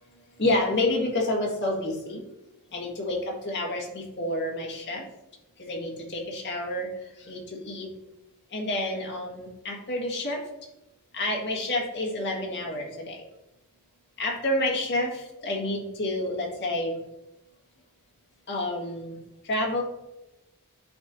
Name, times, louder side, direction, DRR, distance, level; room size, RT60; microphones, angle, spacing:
voice 1, 0.4-2.2 2.7-5.0 5.6-6.9 7.2-7.9 8.5-10.4 11.1-13.2 14.2-17.0 18.5-19.2 19.4-19.8, left 1 dB, 50° left, -2 dB, 1.9 m, -29 dB
11.0 x 4.4 x 2.7 m, 0.94 s
head